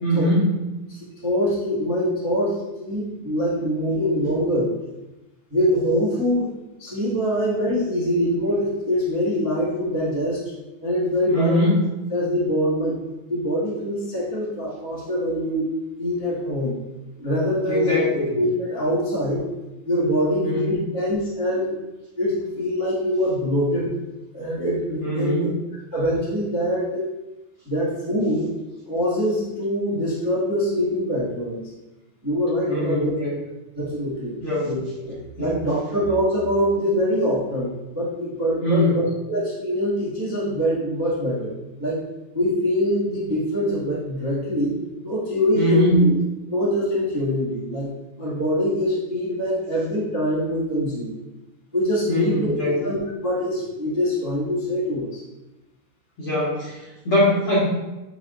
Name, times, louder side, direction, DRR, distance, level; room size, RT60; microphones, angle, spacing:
voice 1, 0.0-0.4 11.3-11.8 17.7-18.3 20.4-20.8 25.0-25.4 32.7-33.3 34.4-34.7 35.4-35.5 38.6-39.0 45.5-46.1 52.1-52.8 56.2-57.6, left 1 dB, 50° left, -9 dB, 1.7 m, -22 dB
voice 2, 0.9-4.7 5.5-6.5 6.8-10.4 10.8-11.6 12.1-15.6 16.0-16.7 17.2-18.1 18.3-19.4 19.8-21.8 22.2-23.9 24.3-25.5 25.9-27.0 27.6-28.5 28.9-31.6 32.2-33.1 33.8-34.3 34.6-41.5 41.8-42.0 42.3-44.7 45.0-46.1 46.5-47.9 48.2-51.1 51.7-52.5 52.8-55.2, equal, 15° right, -9 dB, 0.8 m, -24 dB
9.3 x 4.3 x 2.6 m, 1.0 s
omnidirectional pair, 4.4 m